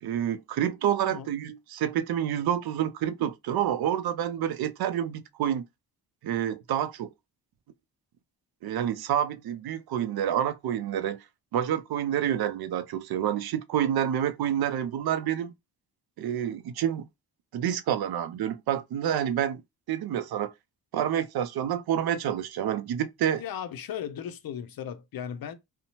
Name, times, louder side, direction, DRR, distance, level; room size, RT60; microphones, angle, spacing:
voice 1, 0.0-5.6 6.2-7.1 8.6-11.2 11.5-15.5 16.2-17.1 17.5-19.6 19.9-20.5 20.9-23.4, right 10 dB, 65° right, 0.5 m, -28 dB
voice 2, 23.4-25.5, left 9 dB, 60° left, 0.5 m, -36 dB
2.7 x 2.1 x 2.9 m
cardioid pair, 65°, 41 cm